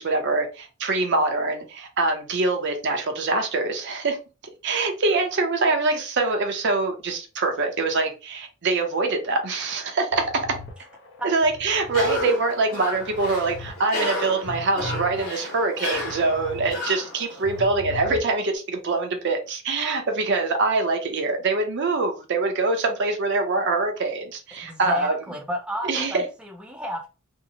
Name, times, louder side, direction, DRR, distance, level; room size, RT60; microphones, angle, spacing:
voice 1, 0.0-4.2 4.6-10.5 11.2-25.2 25.9-26.2, right 3 dB, 55° right, 0.6 m, -24 dB
sound 1, 10.1-12.2 12.6-13.7 14.1-16.7 17.1-18.5, left 3 dB, 60° left, 0.6 m, -39 dB
Cough, 11.9-17.6, left 1 dB, 85° left, 1.0 m, -32 dB
voice 2, 24.6-27.1, left 1 dB, 5° right, 0.4 m, -32 dB
2.7 x 2.0 x 2.6 m
head